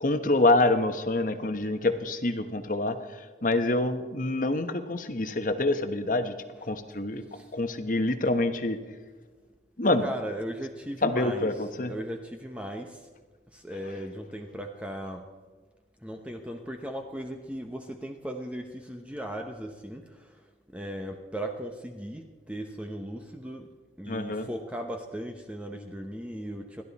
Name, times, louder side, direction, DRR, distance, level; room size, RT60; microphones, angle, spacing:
voice 1, 0.0-3.0 3.4-6.4 6.7-7.2 7.5-8.8 9.8-10.1 11.0-11.9 24.1-24.5, left 2 dB, 50° left, 8 dB, 1.2 m, -26 dB
voice 2, 10.0-11.5 11.8-13.1 13.5-15.3 16.0-20.4 20.7-26.8, right 1 dB, 5° right, 3 dB, 0.9 m, -37 dB
29.5 x 12.0 x 4.2 m, 1.4 s
head